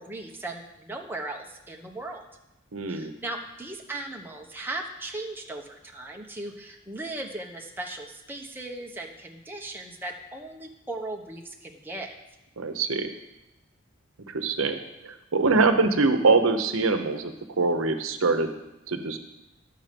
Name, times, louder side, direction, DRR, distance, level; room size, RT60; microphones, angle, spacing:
voice 1, 0.0-2.3 2.9-12.1, right 2 dB, 10° right, 1 dB, 1.0 m, -37 dB
voice 2, 2.7-3.1 12.6-13.1 14.3-18.5 18.9-19.2, right 3 dB, 90° right, 7 dB, 0.9 m, -24 dB
11.0 x 6.5 x 5.2 m, 0.93 s
head